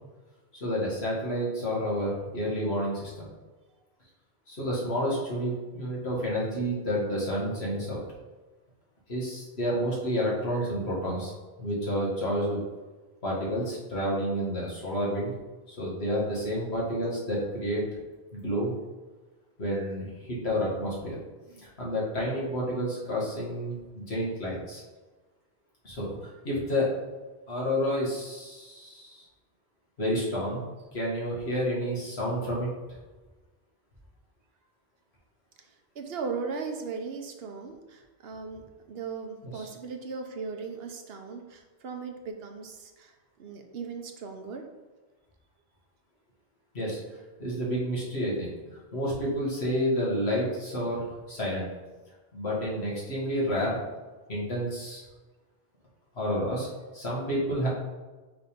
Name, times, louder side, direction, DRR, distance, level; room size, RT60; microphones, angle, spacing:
voice 1, 0.5-3.3 4.5-8.0 9.1-11.3 11.6-12.6 13.2-15.3 15.7-17.8 18.3-18.7 19.6-21.2 21.5-24.8 25.8-26.9 27.5-29.3 30.0-32.7 39.5-39.7 46.7-47.0 47.4-48.5 48.9-51.7 52.3-53.8 54.3-55.0 56.2-56.7 56.9-57.7, equal, 85° left, -5 dB, 2.0 m, -30 dB
voice 2, 35.6-44.6, right 5 dB, 70° right, 4 dB, 1.0 m, -38 dB
5.8 x 3.6 x 5.1 m, 1.2 s
omnidirectional pair, 1.1 m